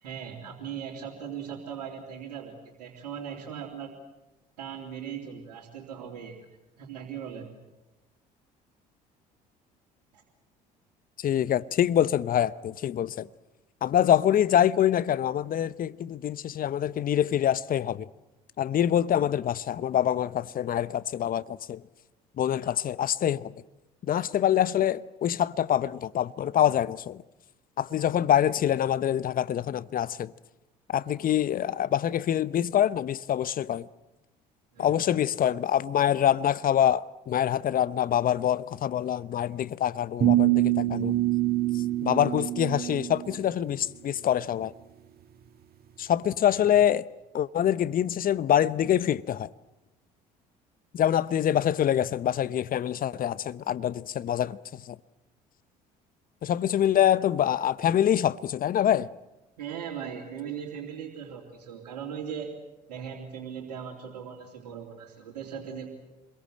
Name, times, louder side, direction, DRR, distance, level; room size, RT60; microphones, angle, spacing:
voice 1, 0.0-3.9 4.6-6.4 6.8-7.5 10.1-10.2 34.7-35.0 46.5-46.7 59.6-62.5 62.9-65.9, right 8 dB, 75° right, 3.3 m, -39 dB
voice 2, 11.2-13.3 13.8-18.1 18.6-21.8 22.4-23.5 24.1-27.2 27.8-30.3 30.9-33.9 34.8-41.2 42.0-44.7 46.0-47.1 47.3-49.5 50.9-55.0 56.4-59.1, left 10 dB, 45° left, 0.9 m, -25 dB
sound 1, 40.2-43.3, right 15 dB, 50° right, 1.7 m, -25 dB
27.5 x 22.5 x 7.7 m
hypercardioid pair, 55°, 20 cm